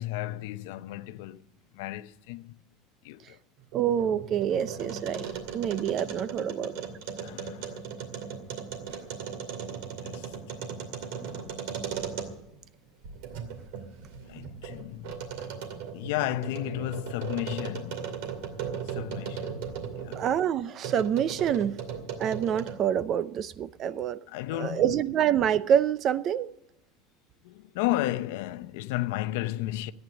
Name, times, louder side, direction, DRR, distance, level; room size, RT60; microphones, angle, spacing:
voice 1, 0.0-1.4 1.7-2.6 3.0-3.4 7.2-7.8 10.0-11.5 14.3-15.5 15.9-18.1 18.9-20.3 24.3-24.9 27.4-29.9, left 16 dB, 75° left, 0.6 m, -34 dB
sound 1, 3.6-12.6 13.0-20.3 20.8-22.9, right 7 dB, 75° right, 2.4 m, -37 dB
voice 2, 3.7-5.3 5.5-6.8 20.2-21.8 22.2-24.2 24.6-26.5, right 9 dB, 35° right, 0.5 m, -26 dB
14.0 x 9.4 x 7.8 m
cardioid pair, 160°, 0 cm